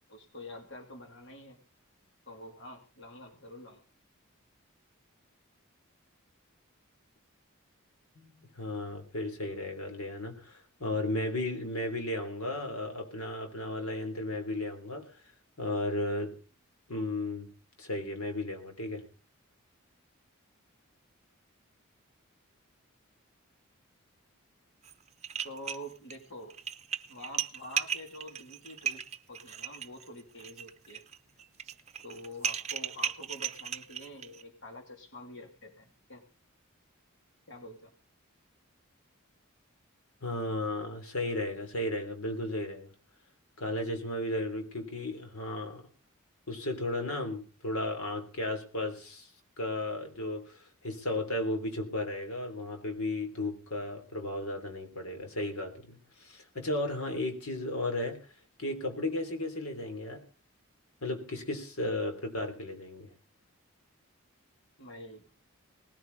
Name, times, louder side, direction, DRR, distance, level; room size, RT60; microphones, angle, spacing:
voice 1, 0.1-1.6 2.3-3.8 25.4-26.6 27.1-29.0 29.3-31.0 32.0-36.2 37.5-37.9 64.8-65.3, left 1 dB, 55° left, 2.9 m, -46 dB
voice 2, 8.2-15.2 15.6-16.4 16.9-17.5 17.8-19.0 40.2-42.9 43.6-45.8 46.5-49.3 49.6-58.3 58.6-60.2 61.0-63.1, left 1 dB, 90° left, 3.5 m, -34 dB
sound 1, 24.8-24.9 25.2-26.2 26.5-34.4, right 8 dB, 30° right, 0.8 m, -36 dB
19.5 x 14.0 x 4.1 m
head